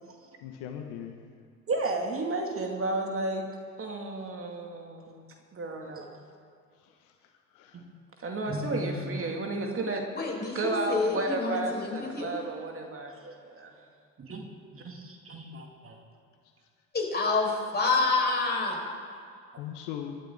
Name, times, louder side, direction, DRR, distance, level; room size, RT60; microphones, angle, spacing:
voice 1, 0.4-1.2 6.8-7.1 7.5-7.8 8.6-8.7 9.2-9.3 19.5-20.2, left 9 dB, 55° left, 4 dB, 1.6 m, -40 dB
voice 2, 1.7-3.5 3.8-5.2 5.5-6.2 7.7-7.8 8.2-10.0 10.5-13.7 14.2-14.5 14.7-16.0, right 2 dB, 30° right, 2 dB, 2.4 m, -32 dB
voice 3, 10.1-12.4 16.9-18.9, left 3 dB, 20° left, 0 dB, 4.9 m, -28 dB
29.0 x 13.0 x 3.8 m, 2.3 s
figure-of-eight pair, 70°, 47 cm